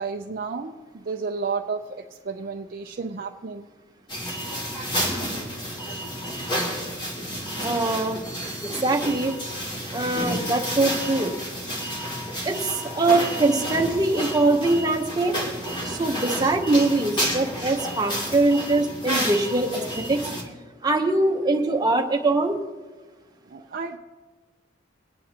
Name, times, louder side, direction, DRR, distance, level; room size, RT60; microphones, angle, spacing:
voice 1, 0.0-3.7 23.5-24.0, right 4 dB, 50° right, 2 dB, 0.6 m, -32 dB
sound 1, 4.1-20.4, equal, 25° left, 2.5 m, -30 dB
voice 2, 7.6-8.2 8.6-9.3 9.9-11.3 12.4-15.3 15.8-20.3 20.8-22.6, right 2 dB, 20° right, 1 dB, 1.0 m, -23 dB
26.0 x 9.3 x 2.9 m, 1.4 s
head